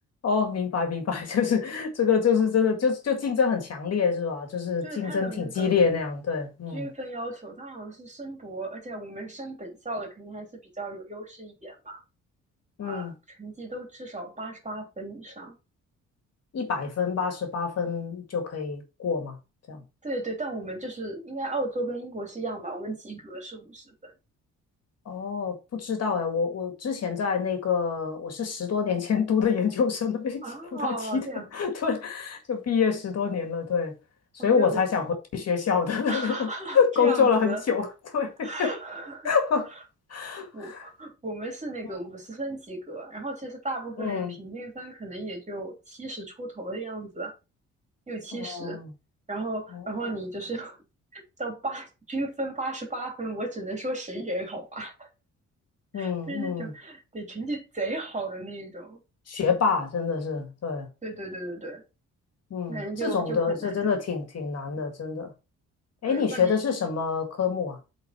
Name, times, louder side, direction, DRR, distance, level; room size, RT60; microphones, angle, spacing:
voice 1, 0.2-6.9 12.8-13.1 16.5-19.4 19.7-19.8 25.1-30.4 30.7-31.3 31.5-33.9 34.3-35.1 35.3-36.5 36.7-38.7 39.2-39.7 40.1-40.8 44.0-44.4 48.3-48.9 49.7-50.1 55.9-56.7 59.3-60.9 62.5-65.3 66.0-67.8, left 6 dB, 55° left, 2.0 m, -26 dB
voice 2, 4.8-5.7 6.7-12.0 12.8-15.6 20.0-24.1 30.4-31.5 34.4-34.9 36.1-37.6 38.4-39.3 40.1-47.3 48.1-48.8 49.3-50.8 51.1-55.1 55.9-59.0 61.0-61.8 62.7-63.9 66.0-66.6, right 2 dB, 25° right, 3.1 m, -35 dB
7.9 x 4.1 x 4.3 m
cardioid pair, 90°, 30 cm